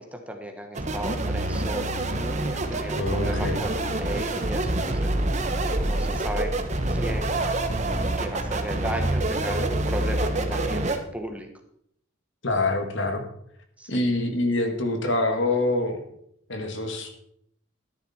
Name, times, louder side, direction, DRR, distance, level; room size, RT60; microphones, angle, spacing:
voice 1, 0.0-2.0 2.5-5.3 5.8-6.5 6.9-7.5 8.2-11.5 13.8-14.0, equal, 5° right, 5 dB, 1.1 m, -35 dB
sound 1, 0.7-11.0, right 2 dB, 35° right, 1.2 m, -26 dB
voice 2, 2.9-3.6 12.4-13.2 13.9-16.0 16.5-17.1, left 2 dB, 65° left, 5 dB, 2.0 m, -25 dB
13.0 x 10.5 x 4.4 m, 0.72 s
head